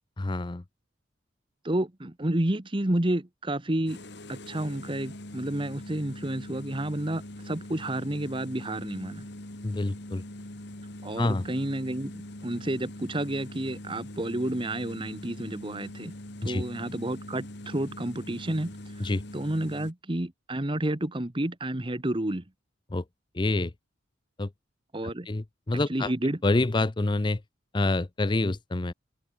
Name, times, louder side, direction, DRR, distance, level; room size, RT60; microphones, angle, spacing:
voice 1, 0.2-0.6 9.6-10.2 11.2-11.4 16.4-16.6 19.0-19.2 22.9-23.0 23.3-23.7 24.4-24.5 25.3-26.1 26.4-27.4 27.7-28.9, left 2 dB, 25° left, 0.5 m, -27 dB
voice 2, 1.6-4.0 4.3-9.2 11.0-16.1 16.4-22.4 24.9-25.3 25.9-26.4, right 1 dB, 25° right, 1.2 m, -30 dB
sound 1, 3.9-19.9, left 1 dB, 60° left, 2.6 m, -42 dB
open air
head